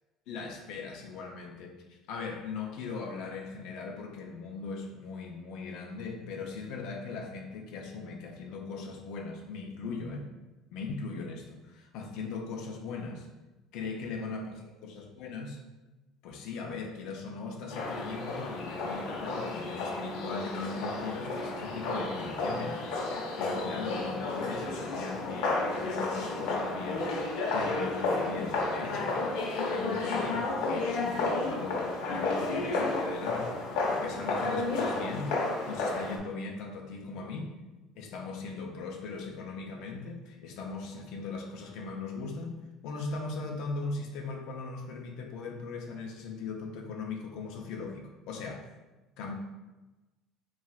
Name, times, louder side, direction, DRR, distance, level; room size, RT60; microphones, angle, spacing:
voice 1, 0.3-10.3 10.7-13.3 13.7-15.6 16.2-22.8 23.4-27.1 27.5-29.2 29.6-33.6 33.9-37.5 37.9-42.6 42.8-48.7 49.2-49.4, left 4 dB, 70° left, 1 dB, 0.6 m, -39 dB
sound 1, 17.7-36.2, left 3 dB, 90° left, 0.9 m, -32 dB
7.2 x 2.4 x 2.4 m, 1.1 s
cardioid pair, 155°, 0 cm